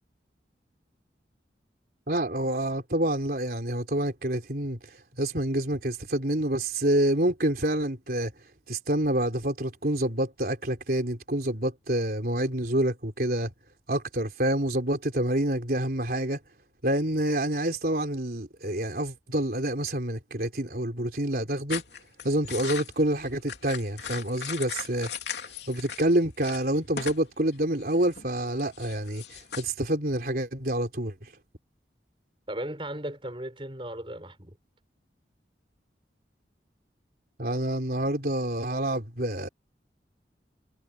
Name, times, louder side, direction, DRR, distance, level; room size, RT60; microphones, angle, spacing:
voice 1, 2.1-8.3 8.7-13.5 13.9-16.4 16.8-21.8 22.2-25.1 25.7-31.3 37.4-39.5, right 1 dB, 55° right, 4.0 m, -27 dB
sound 1, 21.7-26.1 26.4-27.3 27.5-29.6, left 7 dB, 75° left, 3.2 m, -38 dB
voice 2, 32.5-34.6, right 1 dB, 30° right, 5.3 m, -36 dB
head